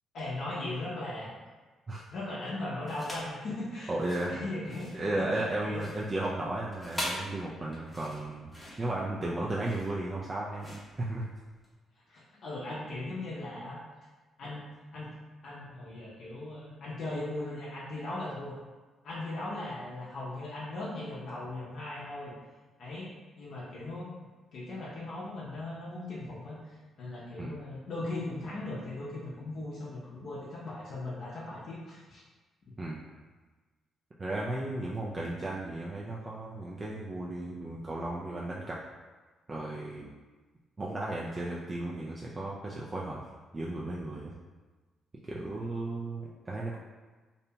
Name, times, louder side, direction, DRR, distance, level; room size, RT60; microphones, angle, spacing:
voice 1, 0.1-1.3 2.1-3.9 4.3-5.8 8.6-8.8 12.1-13.8 14.4-14.6 14.9-15.1 15.4-18.5 19.0-22.3 22.8-23.1 23.4-24.1 24.5-32.2, left 2 dB, 65° left, -7 dB, 0.6 m, -38 dB
sound 1, 2.8-3.4 3.9-11.7, left 1 dB, 10° left, 0.7 m, -42 dB
voice 2, 3.9-4.4 4.9-11.3 27.4-27.6 32.8-33.1 34.2-38.8 39.5-40.1 40.8-43.2 43.5-44.3 45.2-46.8, right 2 dB, 30° right, -5 dB, 0.3 m, -35 dB
2.7 x 2.1 x 2.8 m, 1.3 s
cardioid pair, 90°, 0 cm